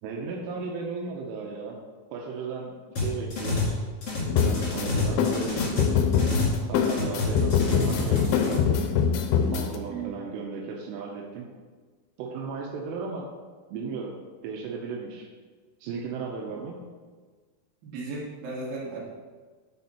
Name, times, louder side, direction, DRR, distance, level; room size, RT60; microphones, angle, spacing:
voice 1, 0.0-1.8 2.1-3.7 4.4-6.0 6.7-8.8 9.5-11.5 12.2-13.3 13.7-14.2 14.4-15.3 15.8-16.8, right 5 dB, 85° right, -1 dB, 2.9 m, -35 dB
sound 1, 3.0-3.8 4.0-6.6 6.8-8.6, left 3 dB, 45° left, 1.7 m, -28 dB
sound 2, 4.3-9.8, left 7 dB, 80° left, 2.2 m, -24 dB
voice 2, 17.8-19.0, right 3 dB, 60° right, -5 dB, 3.2 m, -35 dB
9.6 x 4.2 x 4.2 m, 1.5 s
omnidirectional pair, 4.9 m